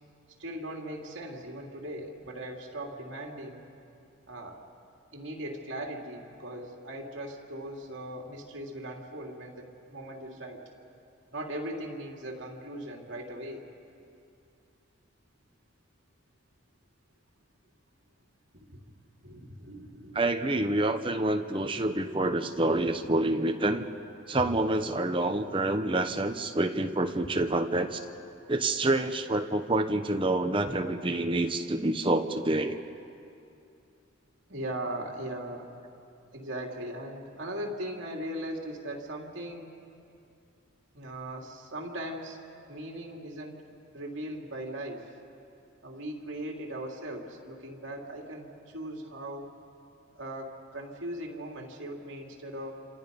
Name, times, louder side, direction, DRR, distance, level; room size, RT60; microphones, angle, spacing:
voice 1, 0.4-3.6 4.3-4.6 5.1-10.6 11.3-13.6 18.5-18.8 19.2-20.6 22.6-23.1 24.3-24.4 27.4-27.5 30.6-30.8 34.5-35.7 36.3-39.8 40.9-42.4 42.7-43.6 43.9-45.1 45.8-49.5 50.1-52.7, right 1 dB, 65° right, 0 dB, 3.1 m, -39 dB
voice 2, 20.1-23.9 24.3-28.0 28.5-32.8, right 2 dB, 25° right, 6 dB, 1.0 m, -27 dB
29.0 x 27.0 x 5.4 m, 2.6 s
head